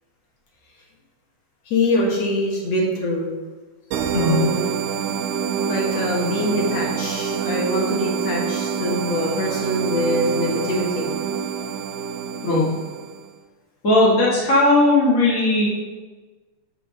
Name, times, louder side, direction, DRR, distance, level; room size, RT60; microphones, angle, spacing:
voice 1, 1.7-3.4 4.1-4.6 5.7-11.1, left 1 dB, 55° left, -1 dB, 2.2 m, -24 dB
sound 1, 3.9-13.3, right 7 dB, 80° right, 2.1 m, -26 dB
voice 2, 13.8-15.7, left 2 dB, 30° left, -7 dB, 1.6 m, -17 dB
7.5 x 5.7 x 6.5 m, 1.3 s
omnidirectional pair, 3.9 m